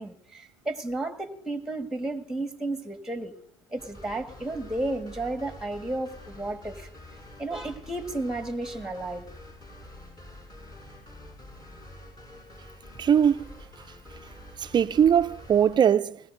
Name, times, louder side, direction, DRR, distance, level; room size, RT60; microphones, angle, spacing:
voice 1, 0.0-3.3 3.7-6.9 7.4-9.2, right 2 dB, 5° right, 1.6 m, -33 dB
sound 1, 3.8-15.8, left 1 dB, 25° left, 5.8 m, -47 dB
voice 2, 13.0-13.5 14.6-16.2, right 8 dB, 30° right, 0.5 m, -21 dB
20.0 x 17.5 x 2.6 m
hypercardioid pair, 80°, 14 cm